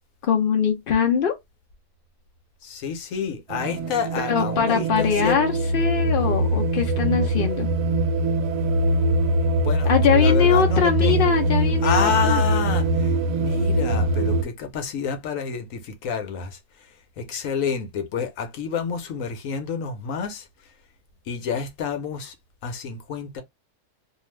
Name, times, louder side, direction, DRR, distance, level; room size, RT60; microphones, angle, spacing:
voice 1, 0.3-1.4 4.3-7.7 9.8-12.4, left 7 dB, 85° left, 0.4 m, -22 dB
voice 2, 2.6-5.4 9.6-11.2 11.8-16.6 17.2-20.5 21.3-22.3 22.6-23.4, left 6 dB, 65° left, 0.9 m, -28 dB
sound 1, 3.5-14.4, right 1 dB, 85° right, 1.2 m, -22 dB
2.6 x 2.4 x 3.1 m
omnidirectional pair, 1.7 m